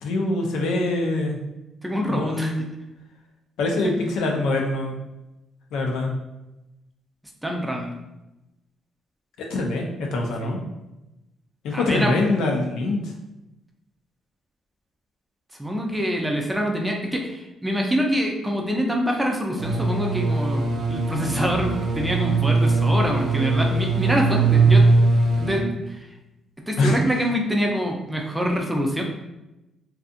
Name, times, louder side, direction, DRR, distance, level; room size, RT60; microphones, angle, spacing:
voice 1, 0.0-1.4 2.1-2.6 3.6-5.0 5.7-6.1 9.5-10.6 11.6-13.1 26.8-27.0, left 2 dB, 85° left, 0 dB, 0.5 m, -24 dB
voice 2, 1.8-2.5 3.8-3.9 7.4-7.9 10.4-10.6 11.7-12.1 15.6-20.6 20.9-24.8 25.4-26.1 26.7-29.0, equal, 10° right, 1 dB, 0.5 m, -25 dB
sound 1, 19.6-25.6, right 3 dB, 55° right, 0.5 m, -20 dB
2.6 x 2.4 x 2.5 m, 0.95 s
cardioid pair, 90°, 0 cm